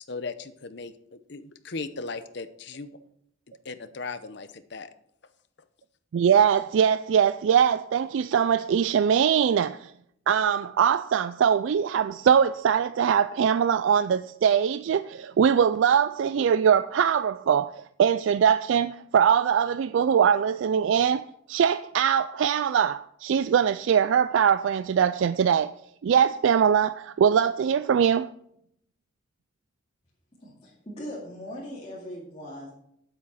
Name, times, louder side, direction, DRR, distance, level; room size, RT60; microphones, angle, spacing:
voice 1, 0.0-3.0 3.5-4.9, left 4 dB, 60° left, 0.8 m, -37 dB
voice 2, 6.1-9.9 10.3-25.7 26.0-28.3, right 8 dB, 70° right, 0.3 m, -22 dB
voice 3, 30.4-32.7, equal, 30° left, 2.4 m, -39 dB
9.0 x 8.1 x 5.6 m
head